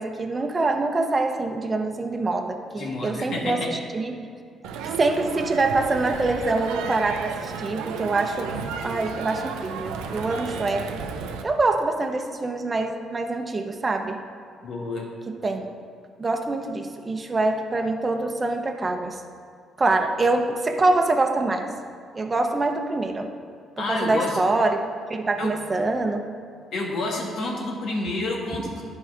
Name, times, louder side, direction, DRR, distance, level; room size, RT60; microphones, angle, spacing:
voice 1, 0.0-4.2 4.8-8.5 8.8-11.0 11.4-14.2 15.3-15.7 16.2-19.2 19.8-21.7 22.1-23.3 23.9-24.8 25.1-26.2, right 2 dB, 30° right, 4 dB, 0.8 m, -25 dB
voice 2, 2.8-3.7 14.6-15.1 23.8-24.4 25.4-25.5 26.7-28.8, left 2 dB, 70° left, -1 dB, 1.8 m, -29 dB
Crowd, 4.6-11.4, right 6 dB, 85° right, 0.5 m, -33 dB
11.0 x 4.8 x 4.8 m, 2.2 s
supercardioid pair, 60°, 0 cm